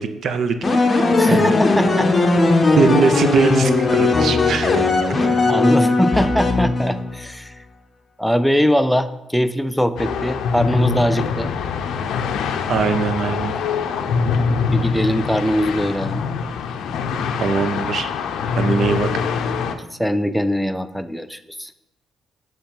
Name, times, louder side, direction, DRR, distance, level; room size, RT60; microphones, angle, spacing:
voice 1, 0.0-1.5 2.7-5.1 12.7-13.5 17.4-18.1 18.5-19.1, right 5 dB, 60° right, 9 dB, 0.6 m, -21 dB
sound 1, 0.6-7.3, left 3 dB, 30° left, 0.7 m, -18 dB
voice 2, 1.2-2.1 5.5-7.6 8.2-11.5 14.6-16.2 20.0-21.7, equal, ahead, 10 dB, 0.4 m, -21 dB
sound 2, 10.0-19.7, left 5 dB, 75° left, 0.5 m, -23 dB
6.9 x 3.1 x 5.3 m, 0.91 s
cardioid pair, 90°, 0 cm